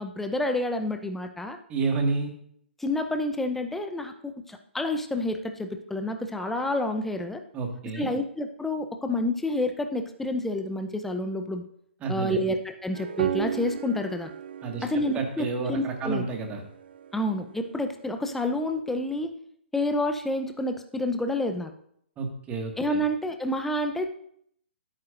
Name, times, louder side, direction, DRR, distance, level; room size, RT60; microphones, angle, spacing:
voice 1, 0.0-1.6 2.8-7.4 7.9-11.6 12.1-14.3 14.8-16.2 17.1-19.3 19.7-21.7 22.8-24.1, left 1 dB, 5° left, 6 dB, 0.8 m, -29 dB
voice 2, 1.7-2.3 7.5-8.1 12.0-12.5 14.6-14.8 15.1-16.6 22.2-23.0, right 4 dB, 20° right, 2 dB, 1.9 m, -30 dB
sound 1, 12.9-17.9, right 8 dB, 60° right, 0.4 m, -35 dB
16.5 x 8.7 x 2.6 m, 0.68 s
figure-of-eight pair, 125°, 6 cm